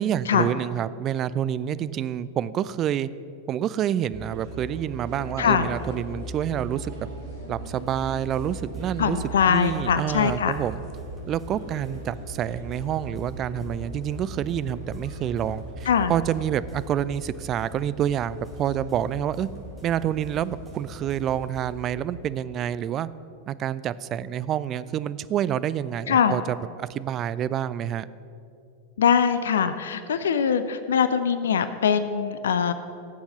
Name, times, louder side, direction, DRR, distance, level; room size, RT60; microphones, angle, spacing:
voice 1, 0.0-3.1 3.5-6.9 7.5-9.2 9.5-10.8 11.3-19.5 19.8-23.1 23.5-28.1, right 10 dB, 30° right, 16 dB, 0.4 m, -28 dB
sound 1, 4.1-22.3, right 2 dB, 55° right, 3.9 m, -39 dB
voice 2, 5.4-5.7 9.0-10.6 15.9-16.1 26.1-26.4 29.0-32.7, left 7 dB, 65° left, 11 dB, 0.6 m, -22 dB
sound 2, 7.6-21.8, left 1 dB, 15° right, 3.3 m, -46 dB
17.0 x 7.2 x 7.5 m, 2.6 s
figure-of-eight pair, 90°, 0 cm